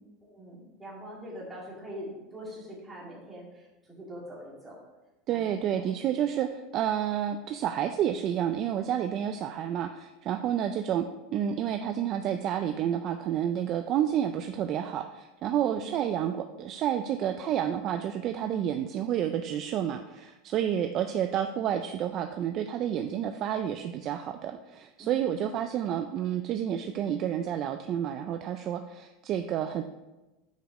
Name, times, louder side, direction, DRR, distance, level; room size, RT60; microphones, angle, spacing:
voice 1, 0.2-4.8 5.3-5.9 15.8-15.9 25.0-25.3, equal, 5° right, -6 dB, 2.1 m, -43 dB
voice 2, 5.3-29.8, right 10 dB, 35° right, 7 dB, 0.3 m, -30 dB
6.5 x 4.8 x 5.2 m, 1.1 s
supercardioid pair, 170°, 0 cm